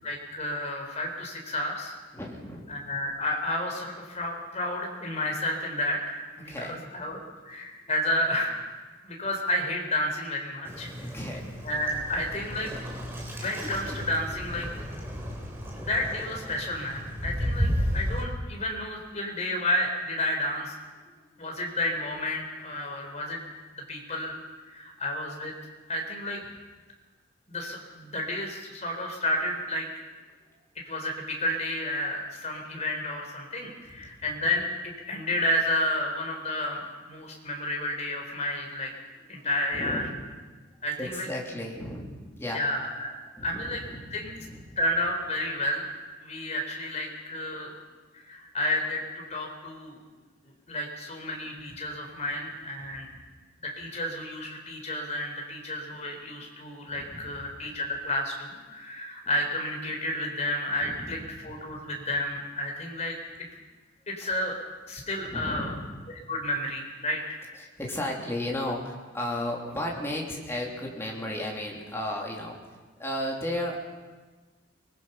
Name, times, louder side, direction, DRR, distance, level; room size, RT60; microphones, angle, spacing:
voice 1, 0.0-1.9 2.7-8.6 9.0-10.9 11.6-12.7 13.4-14.7 15.8-20.7 21.4-23.5 23.9-24.4 24.7-25.5 25.9-26.4 27.5-29.9 30.8-38.9 39.3-40.0 40.8-41.3 42.5-43.1 43.4-43.8 44.1-44.3 44.8-45.9 46.2-47.7 48.2-50.0 50.7-53.1 53.6-63.2 64.1-64.6 64.9-65.7 66.3-67.4, left 1 dB, 35° left, 1 dB, 4.2 m, -31 dB
voice 2, 2.1-2.8 6.5-6.8 11.0-11.4 21.0-21.1 33.9-34.2 39.4-40.2 41.0-42.6 43.4-44.8 47.8-47.9 52.9-53.2 56.9-57.4 60.8-61.2 61.5-61.6 65.3-66.0 67.6-72.6 73.0-73.8, left 1 dB, 15° left, -2 dB, 3.2 m, -35 dB
Waves surf, 10.6-18.3, equal, 10° right, 3.4 m, -33 dB
24.0 x 20.0 x 5.7 m, 1.3 s
head